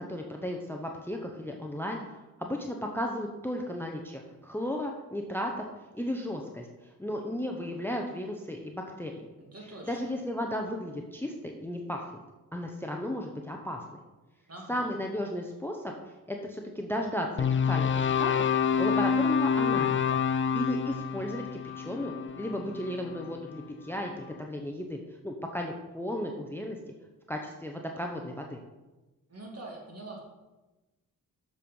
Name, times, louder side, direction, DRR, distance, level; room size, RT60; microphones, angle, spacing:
voice 1, 0.0-5.5 5.9-9.1 9.9-12.1 12.5-13.8 14.7-15.9 16.3-17.3 17.6-18.3 18.8-20.2 20.5-21.4 21.8-26.8 27.3-28.6, equal, 5° left, 2 dB, 0.8 m, -34 dB
voice 2, 9.4-10.1 14.5-15.0 29.3-30.2, right 2 dB, 40° right, -1 dB, 2.4 m, -44 dB
sound 1, 17.4-23.6, left 7 dB, 35° left, 0.4 m, -28 dB
7.4 x 6.9 x 5.4 m, 1.1 s
wide cardioid pair, 115°, 36 cm